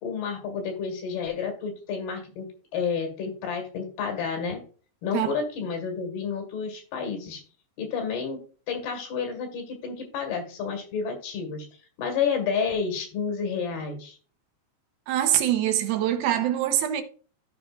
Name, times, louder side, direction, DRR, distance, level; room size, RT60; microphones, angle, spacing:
voice 1, 0.0-2.5 2.7-4.6 5.0-7.4 7.8-8.4 8.7-11.7 12.0-14.2, left 6 dB, 80° left, 3.8 m, -30 dB
voice 2, 15.1-17.0, right 11 dB, 80° right, 2.6 m, -24 dB
14.0 x 5.2 x 2.5 m
omnidirectional pair, 4.4 m